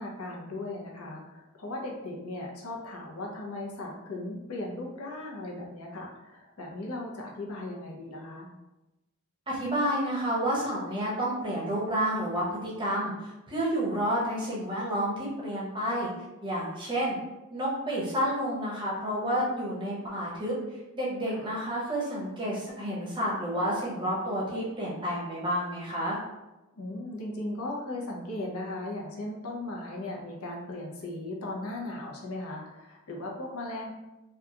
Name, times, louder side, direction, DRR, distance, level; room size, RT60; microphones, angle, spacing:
voice 1, 0.0-8.5 21.3-21.4 26.8-33.9, left 2 dB, 90° left, -2 dB, 0.6 m, -37 dB
voice 2, 9.5-16.1 16.4-17.2 17.5-20.5 20.9-26.2, equal, 20° right, -5 dB, 0.6 m, -30 dB
2.8 x 2.3 x 2.3 m, 1.0 s
head